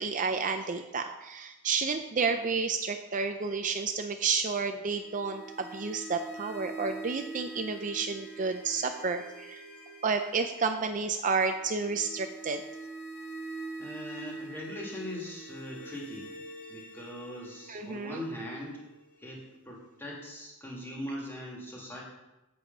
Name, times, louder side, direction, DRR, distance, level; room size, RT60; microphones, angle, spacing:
voice 1, 0.0-9.6 10.0-12.6 17.7-18.2, right 5 dB, 35° right, 6 dB, 0.5 m, -31 dB
sound 1, 4.9-19.8, right 3 dB, 50° left, 3.0 m, -45 dB
voice 2, 13.8-18.8 19.2-22.0, left 1 dB, 10° left, -3 dB, 2.3 m, -41 dB
8.5 x 7.8 x 5.4 m, 0.99 s
head